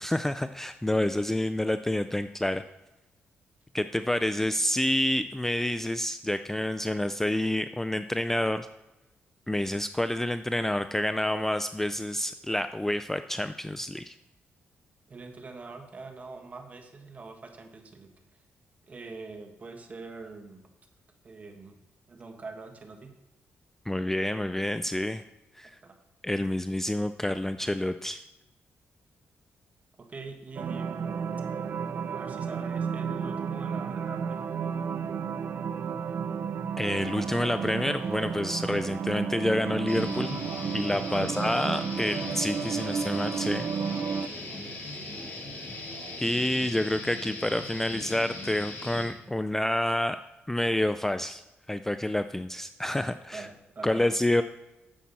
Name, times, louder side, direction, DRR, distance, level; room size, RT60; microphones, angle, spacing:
voice 1, 0.0-2.6 3.7-8.7 9.5-14.1 23.9-25.2 25.6-25.7 26.2-28.2 36.8-40.4 40.7-43.7 46.2-50.2 50.5-51.4 51.7-53.5 53.8-54.4, left 1 dB, 10° left, 10 dB, 0.3 m, -28 dB
voice 2, 15.1-18.1 18.9-20.6 21.2-21.8 22.1-23.1 25.8-26.0 30.0-31.1 32.1-34.6 41.2-41.4 44.2-45.4 53.3-54.1, right 3 dB, 35° right, 4 dB, 1.5 m, -44 dB
sound 1, 30.6-44.3, right 6 dB, 55° right, 0.5 m, -32 dB
sound 2, 36.8-46.2, right 4 dB, 85° right, 2.0 m, -51 dB
sound 3, 39.9-49.1, left 2 dB, 55° left, 2.5 m, -39 dB
10.0 x 7.3 x 4.1 m, 0.96 s
cardioid pair, 100°, 4 cm